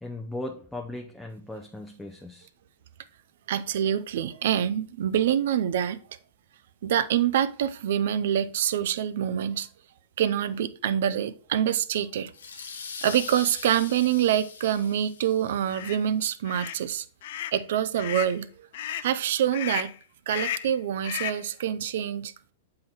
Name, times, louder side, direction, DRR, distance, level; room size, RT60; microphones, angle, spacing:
voice 1, 0.0-2.5, left 1 dB, 5° left, 0.6 m, -37 dB
voice 2, 3.5-6.0 6.8-9.7 10.2-12.3 13.0-17.1 17.5-18.7 19.0-19.9 20.3-22.3, right 10 dB, 65° right, 0.5 m, -26 dB
sound 1, 12.3-15.8, left 5 dB, 85° left, 0.9 m, -41 dB
sound 2, 15.7-16.0 16.5-16.8 17.2-17.6 18.0-18.4 18.7-19.1 19.5-20.0 20.3-20.7 21.0-21.5, left 11 dB, 65° left, 0.4 m, -34 dB
7.6 x 3.8 x 4.3 m
hypercardioid pair, 115°, 0 cm